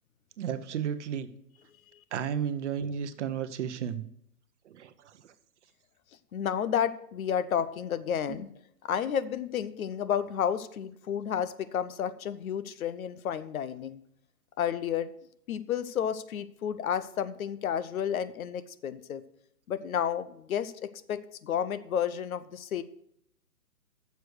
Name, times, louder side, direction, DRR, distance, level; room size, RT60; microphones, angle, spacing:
voice 1, 0.4-1.3 2.1-4.1 4.6-5.3 8.3-8.4, right 8 dB, 45° right, 11 dB, 0.8 m, -33 dB
voice 2, 6.3-8.5 8.8-14.0 14.6-15.1 15.5-19.2 19.7-22.8, left 8 dB, 60° left, 14 dB, 0.8 m, -31 dB
9.1 x 6.9 x 6.5 m, 0.72 s
hypercardioid pair, 140°, 48 cm